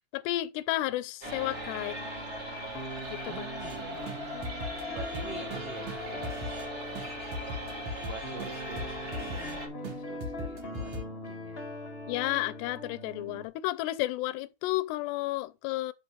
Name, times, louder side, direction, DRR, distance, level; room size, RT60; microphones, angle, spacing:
voice 1, 0.1-2.0 3.1-3.5 12.1-15.9, left 17 dB, 85° left, 2.7 m, -32 dB
sound 1, 1.2-13.4, left 1 dB, 45° left, 0.7 m, -42 dB
sound 2, 1.2-9.7, equal, 35° right, 1.2 m, -39 dB
voice 2, 3.2-4.4 4.9-6.4 6.8-7.1 7.9-11.6, right 6 dB, 75° right, 1.4 m, -46 dB
sound 3, 3.6-3.8 4.1-4.2 4.4-6.7 6.9-9.6 9.8-9.9 10.2-11.0, left 1 dB, 50° right, 2.3 m, -40 dB
6.1 x 5.3 x 6.5 m
omnidirectional pair, 4.9 m